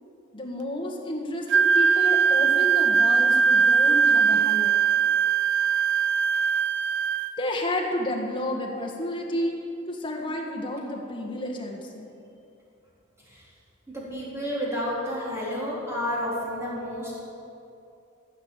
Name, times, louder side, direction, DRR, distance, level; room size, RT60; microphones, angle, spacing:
voice 1, 0.3-4.7 7.4-9.6 9.9-12.1, left 1 dB, 25° left, 0 dB, 1.6 m, -31 dB
Wind instrument woodwind instrument, 1.5-7.3, right 6 dB, 60° right, 0.4 m, -21 dB
voice 2, 14.1-17.2, equal, 15° right, -6 dB, 3.4 m, -30 dB
15.5 x 6.2 x 8.5 m, 2.7 s
head